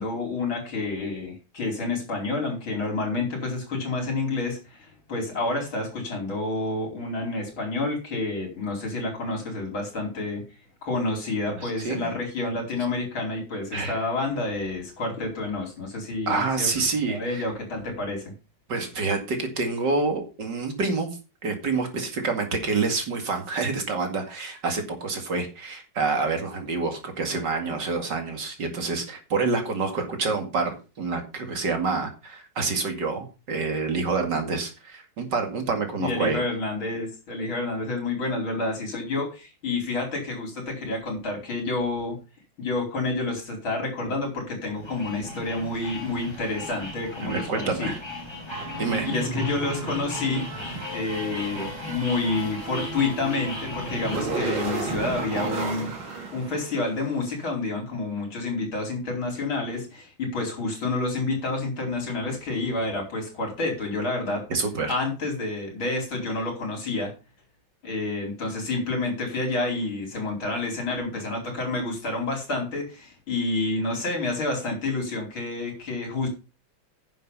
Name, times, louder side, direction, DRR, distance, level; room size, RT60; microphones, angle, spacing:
voice 1, 0.0-10.4 10.8-18.3 36.0-42.1 42.6-47.9 49.0-50.5 50.9-55.9 56.3-64.4 64.9-67.1 67.8-76.3, left 3 dB, 75° left, 1 dB, 5.2 m, -29 dB
voice 2, 11.6-12.1 13.7-14.0 16.3-17.4 18.7-36.4 47.2-48.0 48.8-49.1 64.5-65.0, right 4 dB, 60° right, 5 dB, 2.8 m, -27 dB
sound 1, 44.6-54.2, left 2 dB, 15° left, 2.0 m, -37 dB
sound 2, 48.5-57.2, right 2 dB, 85° right, 3.7 m, -33 dB
10.0 x 7.3 x 5.4 m, 0.31 s
omnidirectional pair, 2.2 m